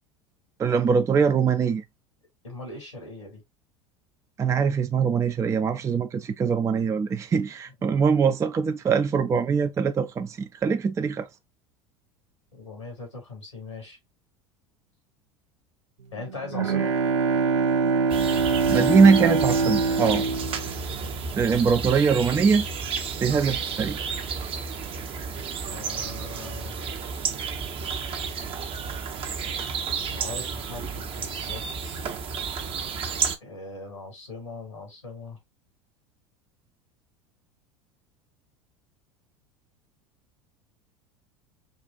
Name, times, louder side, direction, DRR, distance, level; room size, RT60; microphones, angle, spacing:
voice 1, 0.6-1.8 4.4-11.3 18.3-20.2 21.3-22.7 23.2-24.0, right 5 dB, 20° right, 0.4 m, -22 dB
voice 2, 2.4-3.4 12.5-14.0 16.1-17.0 25.7-26.8 28.0-28.1 29.9-32.1 33.4-35.4, left 3 dB, 90° left, 2.3 m, -40 dB
Bowed string instrument, 16.2-21.7, right 4 dB, 80° right, 0.7 m, -24 dB
sound 1, 18.1-33.4, right 6 dB, 35° right, 0.8 m, -32 dB
5.3 x 2.4 x 2.4 m
hypercardioid pair, 80°, 15 cm